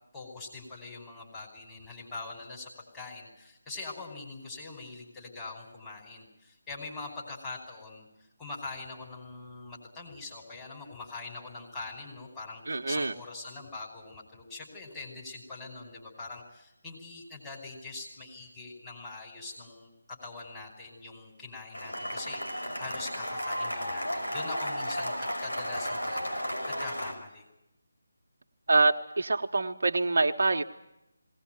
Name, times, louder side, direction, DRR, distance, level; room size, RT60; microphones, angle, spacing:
voice 1, 0.1-27.5, left 3 dB, 10° left, -3 dB, 5.0 m, -43 dB
voice 2, 12.7-13.1 28.7-30.6, right 3 dB, 60° right, 5 dB, 1.1 m, -25 dB
Cheering / Applause, 21.7-27.1, equal, 85° left, 5.3 m, -33 dB
20.0 x 18.5 x 9.2 m, 0.88 s
figure-of-eight pair, 160°, 0 cm